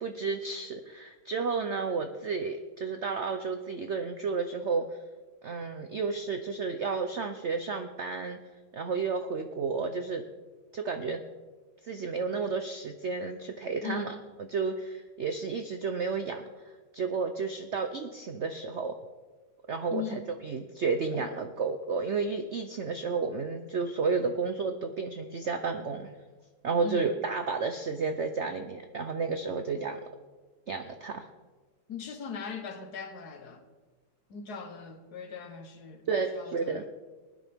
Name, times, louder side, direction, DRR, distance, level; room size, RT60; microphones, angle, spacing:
voice 1, 0.0-5.0 5.4-8.4 8.7-10.3 10.7-11.2 11.8-16.5 16.9-18.9 19.7-26.2 26.6-30.0 30.7-31.3 36.1-36.9, right 4 dB, 85° right, 7 dB, 0.6 m, -32 dB
voice 2, 13.8-14.1 19.9-20.2 21.1-21.3 26.8-27.1 31.9-33.6 34.3-36.1 36.3-36.9, left 6 dB, 55° left, 7 dB, 1.5 m, -39 dB
20.0 x 9.8 x 3.6 m, 1.3 s
omnidirectional pair, 2.1 m